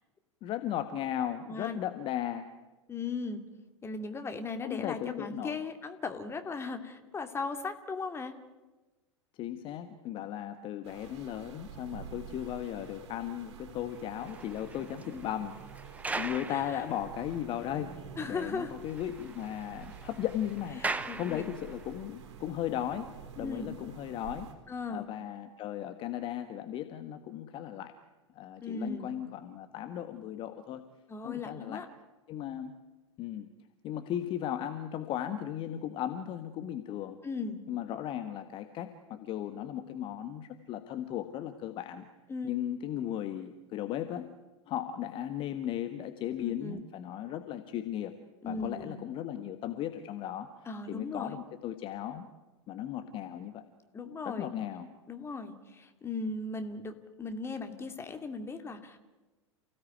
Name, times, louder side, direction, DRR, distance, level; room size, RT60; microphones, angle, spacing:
voice 1, 0.4-2.5 4.6-5.6 9.4-17.9 18.2-20.8 21.2-24.5 24.9-27.9 28.3-30.8 31.2-31.8 32.3-32.8 33.2-33.5 33.8-37.2 37.7-42.1 42.4-44.3 44.7-48.1 48.4-50.5 50.9-52.3 52.7-53.6 54.2-54.9, left 11 dB, 30° left, 9 dB, 1.4 m, -36 dB
voice 2, 1.5-1.8 2.9-3.4 3.8-8.4 15.0-15.2 16.5-16.8 18.2-18.7 20.8-21.4 23.4-23.7 24.7-25.1 28.6-29.1 31.1-31.9 37.2-37.6 42.3-42.5 46.4-46.8 48.4-49.0 50.7-51.4 53.9-54.5 55.1-59.0, left 4 dB, 15° left, 7 dB, 2.5 m, -37 dB
sound 1, 10.8-24.5, right 7 dB, 55° right, 4.5 m, -49 dB
sound 2, 13.9-17.6 17.9-18.0 18.4-18.5 18.7-22.0 22.7-22.9, right 3 dB, 10° right, 1.2 m, -41 dB
29.0 x 17.5 x 9.3 m, 1.2 s
figure-of-eight pair, 90°, 16 cm